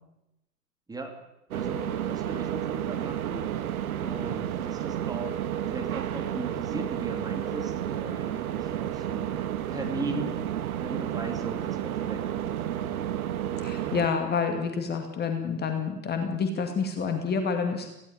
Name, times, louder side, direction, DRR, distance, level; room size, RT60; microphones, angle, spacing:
voice 1, 1.5-3.5 4.0-5.4 5.7-9.3 9.7-10.4 10.7-13.2, right 2 dB, 5° right, 4 dB, 2.9 m, -38 dB
sound 1, 1.5-14.1, right 11 dB, 60° right, 1.8 m, -31 dB
voice 2, 13.6-17.9, left 5 dB, 20° left, 6 dB, 2.4 m, -28 dB
18.5 x 17.0 x 9.1 m, 0.92 s
figure-of-eight pair, 105°, 49 cm